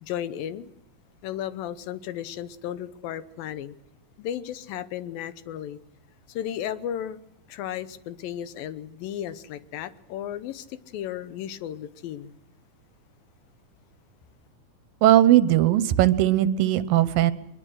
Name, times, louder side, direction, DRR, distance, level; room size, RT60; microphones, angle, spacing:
voice 1, 0.0-0.7 1.2-3.8 4.2-5.8 6.3-7.2 7.5-12.4, left 10 dB, 85° left, 2.7 m, -34 dB
voice 2, 15.0-17.3, right 12 dB, 85° right, 2.7 m, -19 dB
22.5 x 22.0 x 6.3 m
omnidirectional pair, 4.0 m